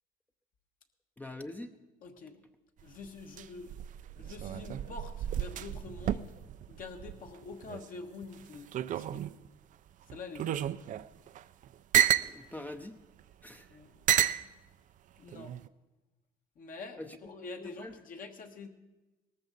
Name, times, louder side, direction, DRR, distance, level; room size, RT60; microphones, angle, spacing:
voice 1, 1.2-1.7 12.1-13.0 13.4-13.7 17.0-17.2 17.6-17.9, left 1 dB, 10° left, 6 dB, 0.6 m, -44 dB
voice 2, 2.0-2.4 2.8-3.8 4.2-6.3 6.7-9.3 10.1-10.8 13.7-14.5 15.2-15.6 16.5-18.7, left 4 dB, 55° left, 4 dB, 1.5 m, -46 dB
sound 1, 2.8-7.9 8.2-9.5 10.1-12.3 13.2-13.3 14.1-14.4 15.3-15.7, right 11 dB, 50° right, 0.4 m, -31 dB
18.5 x 14.0 x 4.0 m, 1.1 s
cardioid pair, 110°, 17 cm